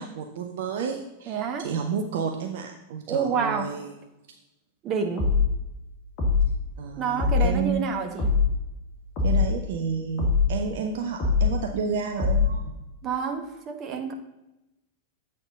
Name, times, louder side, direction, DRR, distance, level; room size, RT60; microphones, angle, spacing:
voice 1, 0.0-3.9 6.8-7.9 9.2-12.7, right 6 dB, 55° right, 4 dB, 0.6 m, -31 dB
voice 2, 1.3-1.7 3.1-3.7 4.8-5.3 7.0-8.3 13.0-14.1, right 6 dB, 35° right, 5 dB, 1.1 m, -28 dB
sound 1, 5.2-5.6 6.2-6.6 7.2-7.6 8.2-8.6 9.2-9.6 10.2-10.6 11.2-11.6 12.2-12.6, left 5 dB, 35° left, 2.1 m, -22 dB
7.8 x 4.3 x 5.4 m, 0.94 s
figure-of-eight pair, 90°, 0 cm